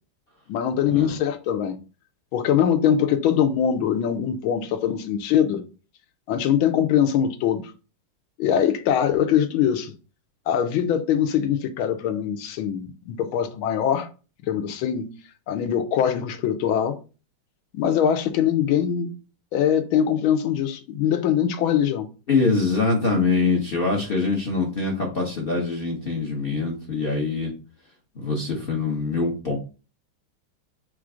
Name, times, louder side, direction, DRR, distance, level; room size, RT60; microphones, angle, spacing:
voice 1, 0.5-1.8 2.3-5.6 6.3-7.6 8.4-9.9 10.5-14.1 14.4-15.1 15.5-17.0 17.7-19.1 19.5-22.1, left 9 dB, 85° left, 1.4 m, -22 dB
voice 2, 22.3-27.5 28.2-29.6, left 3 dB, 50° left, 0.6 m, -24 dB
4.4 x 2.5 x 4.8 m
omnidirectional pair, 2.2 m